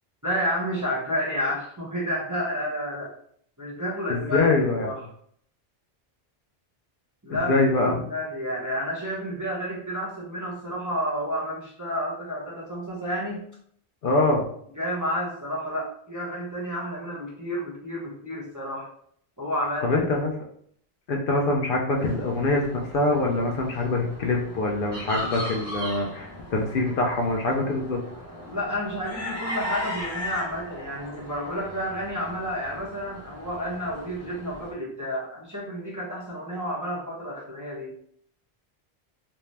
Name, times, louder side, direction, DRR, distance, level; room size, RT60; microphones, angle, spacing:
voice 1, 0.2-3.1 3.6-5.0 7.2-13.5 14.7-18.9 19.4-20.0 28.4-37.9, equal, 25° right, -6 dB, 0.5 m, -30 dB
voice 2, 4.1-4.9 7.3-8.1 14.0-14.4 19.8-20.3 21.1-28.0, left 2 dB, 65° left, 0 dB, 0.7 m, -24 dB
sound 1, 22.0-34.7, left 1 dB, 20° left, 0.7 m, -38 dB
2.6 x 2.1 x 3.1 m, 0.65 s
omnidirectional pair, 1.0 m